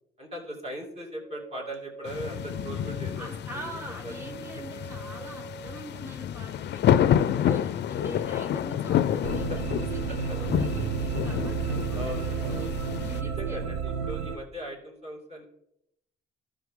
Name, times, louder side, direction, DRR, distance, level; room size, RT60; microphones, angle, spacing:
voice 1, 0.2-3.7 4.0-4.1 9.5-9.6 10.1-10.4 11.9-12.7 13.2-15.4, equal, 30° right, -1 dB, 2.7 m, -39 dB
sound 1, 1.2-6.1, right 5 dB, 55° right, 1.9 m, -46 dB
sound 2, 2.1-13.2, left 10 dB, 60° left, 0.5 m, -29 dB
voice 2, 3.2-10.0 10.3-12.7 13.0-13.6, right 1 dB, 10° right, 2 dB, 1.8 m, -43 dB
sound 3, 9.2-14.4, right 6 dB, 80° right, 0.8 m, -31 dB
12.5 x 5.4 x 3.7 m, 0.77 s
cardioid pair, 90°, 20 cm